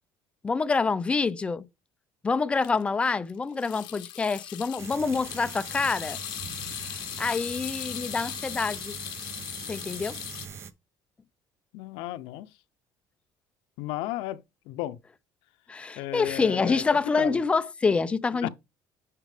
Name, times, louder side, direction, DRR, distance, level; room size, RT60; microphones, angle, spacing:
voice 1, 0.4-1.7 2.2-6.2 7.2-9.0 9.7-10.2 15.7-18.5, left 4 dB, 15° left, 0.3 m, -26 dB
sound 1, 2.6-2.8 3.1-3.3 3.6-10.5, left 13 dB, 65° left, 1.2 m, -38 dB
sound 2, 4.8-10.7, right 7 dB, 30° right, 0.6 m, -42 dB
voice 2, 11.7-12.5 13.8-14.4 14.7-15.0 16.0-16.8 17.2-17.4 18.4-18.5, left 15 dB, 85° left, 0.6 m, -33 dB
9.9 x 4.8 x 3.4 m
cardioid pair, 170°, 8 cm